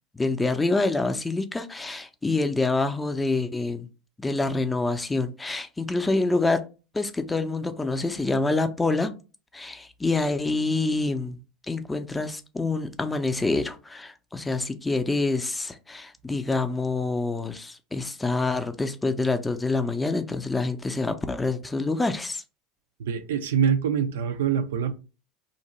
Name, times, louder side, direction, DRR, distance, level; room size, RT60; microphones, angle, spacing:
voice 1, 0.1-3.9 4.2-6.7 6.9-9.1 9.5-11.4 11.7-22.4, left 3 dB, 15° left, 0.4 m, -26 dB
voice 2, 23.0-24.9, right 7 dB, 80° right, 0.3 m, -24 dB
2.6 x 2.0 x 2.9 m
hypercardioid pair, 80°, 0 cm